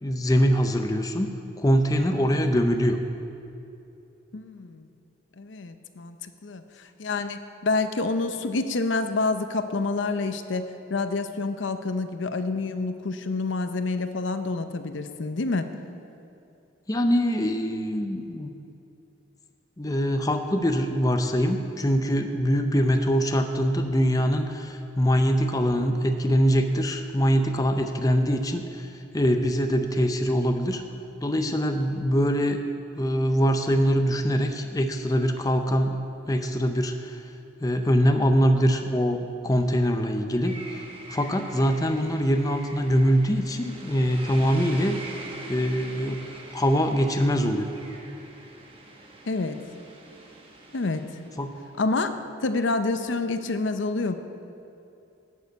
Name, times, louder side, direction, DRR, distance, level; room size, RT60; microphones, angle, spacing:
voice 1, 0.0-3.0 16.9-18.5 19.8-30.8 31.2-32.6 33.0-36.0 36.3-37.2 37.6-40.8 41.1-45.0 45.5-46.2 46.5-47.7 51.4-51.5, equal, 20° left, 6 dB, 0.5 m, -23 dB
voice 2, 4.3-4.9 5.4-15.7 49.3-49.6 50.7-51.0 51.8-54.1, left 3 dB, 75° left, 9 dB, 0.6 m, -28 dB
sound 1, 40.4-51.8, right 2 dB, 30° right, 1.1 m, -44 dB
12.0 x 6.6 x 8.2 m, 2.8 s
head